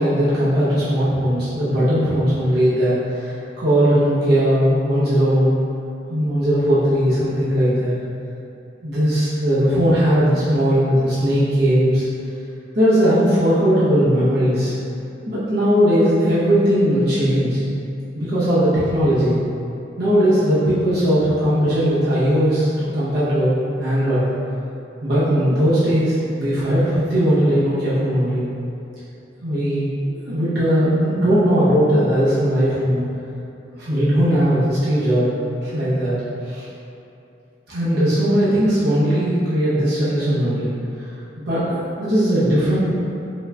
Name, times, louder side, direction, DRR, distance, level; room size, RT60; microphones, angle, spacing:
voice 1, 0.0-5.6 6.1-7.9 8.8-12.1 12.7-14.7 15.3-17.6 18.1-19.4 20.0-24.2 25.0-28.4 29.4-29.9 30.2-33.0 33.7-35.3 35.6-36.2 36.4-36.7 37.7-40.7 41.0-41.1 41.3-42.8, equal, 55° right, -12 dB, 1.0 m, -18 dB
5.4 x 3.1 x 2.4 m, 2.7 s
head